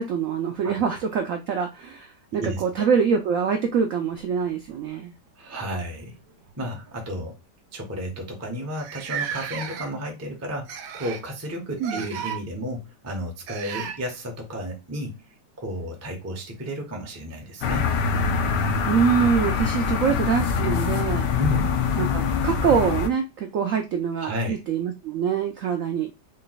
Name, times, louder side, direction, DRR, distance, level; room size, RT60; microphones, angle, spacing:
voice 1, 0.0-5.1 11.8-12.0 18.8-21.3 22.0-26.1, right 6 dB, 70° right, 0.7 m, -24 dB
voice 2, 2.3-2.9 5.4-6.2 6.6-7.4 7.7-15.2 15.6-17.9 21.4-21.8 24.2-24.6, equal, 15° right, 0.5 m, -32 dB
sound 1, 4.1-5.3 6.3-6.5 6.9-7.1 7.8-7.9 8.1-8.2 8.8-10.1 10.7-11.3 11.8-12.4 13.5-14.0 16.1-16.2 17.3-17.4, right 7 dB, 85° right, 1.3 m, -34 dB
sound 2, 17.6-23.1, left 6 dB, 80° left, 1.2 m, -24 dB
3.9 x 2.2 x 3.9 m
omnidirectional pair, 1.9 m